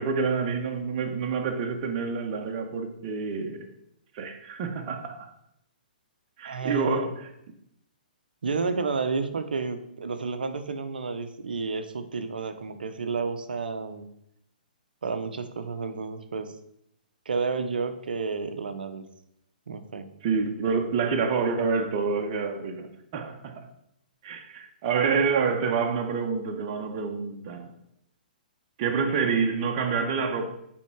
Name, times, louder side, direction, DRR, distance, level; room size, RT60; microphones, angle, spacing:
voice 1, 0.0-3.6 4.1-5.3 6.4-7.3 20.2-23.6 24.2-27.7 28.8-30.5, right 5 dB, 40° right, 1.1 m, -27 dB
voice 2, 6.4-7.1 8.4-14.1 15.0-16.5 17.3-19.0 19.7-20.1, right 4 dB, 75° right, 0.8 m, -31 dB
9.6 x 3.7 x 4.6 m
hypercardioid pair, 125°, 5 cm